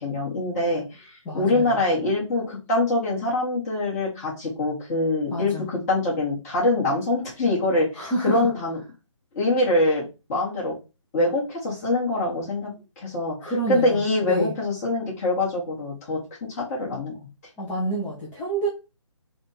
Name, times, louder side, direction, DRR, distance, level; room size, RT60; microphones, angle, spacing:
voice 1, 0.0-1.1 1.3-8.8 9.3-10.0 10.3-10.7 11.1-12.7 13.0-17.1, left 2 dB, 30° left, -5 dB, 2.3 m, -24 dB
voice 2, 1.2-1.8 5.3-5.7 7.9-8.5 13.4-14.5 17.6-18.7, right 1 dB, 15° left, -6 dB, 0.9 m, -28 dB
4.2 x 2.7 x 4.3 m, 0.30 s
figure-of-eight pair, 150°, 16 cm